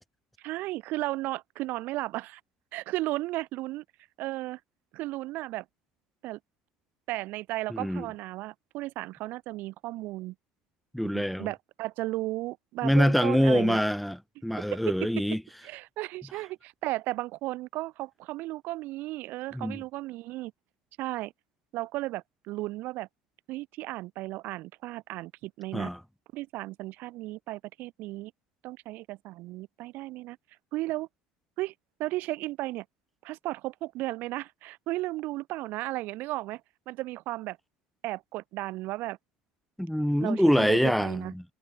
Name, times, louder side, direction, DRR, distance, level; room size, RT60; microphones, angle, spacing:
voice 1, 0.4-2.4 2.7-3.8 4.2-4.6 4.9-5.6 6.2-6.4 7.1-10.3 11.0-13.8 14.7-15.0 15.6-20.5 21.0-21.3 21.7-23.1 23.5-25.9 26.3-28.3 28.6-30.4 30.7-31.1 31.6-31.7 32.0-32.8 33.2-36.6 36.9-37.6 38.0-39.2 40.2-41.3, right 18 dB, 65° right, 4.4 m, -34 dB
voice 2, 7.7-8.1 10.9-11.5 12.8-14.2 14.4-15.4 19.5-19.8 25.7-26.0 39.8-41.4, equal, ahead, 1.9 m, -25 dB
supercardioid pair, 120°, 3 cm